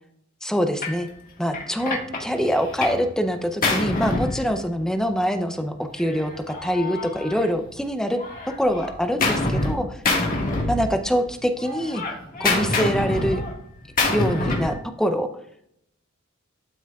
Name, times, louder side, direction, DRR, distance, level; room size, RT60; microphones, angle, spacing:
voice 1, 0.4-1.1 1.4-8.2 8.5-10.0 10.7-12.0 12.4-13.4 14.1-15.3, equal, 5° left, 6 dB, 0.5 m, -24 dB
Gunshot gunfire, 0.8-1.0 1.5-3.1 3.3-5.0 6.0-7.8 8.2-9.7 10.0-11.3 11.6-14.8, left 2 dB, 45° left, 1.7 m, -26 dB
12.0 x 5.9 x 2.4 m, 0.71 s
head